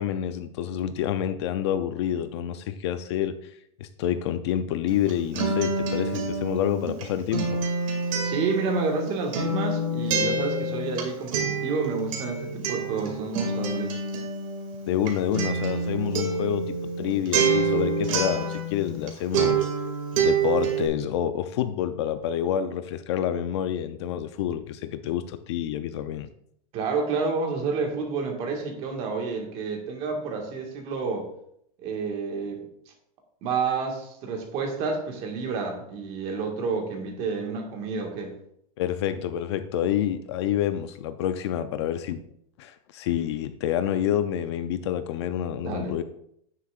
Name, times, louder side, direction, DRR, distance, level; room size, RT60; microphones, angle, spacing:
voice 1, 0.0-3.5 3.8-7.6 14.9-19.7 20.2-26.3 38.8-42.2 42.6-46.0, left 10 dB, 45° left, 11 dB, 0.5 m, -28 dB
Acoustic guitar, 4.9-19.1 19.3-20.9, right 4 dB, 55° right, 2.3 m, -27 dB
voice 2, 8.2-14.0 26.7-31.3 31.8-32.7 33.4-38.3 45.6-45.9, right 4 dB, 30° right, 2 dB, 1.7 m, -29 dB
10.0 x 9.7 x 2.4 m, 0.72 s
supercardioid pair, 175°, 20 cm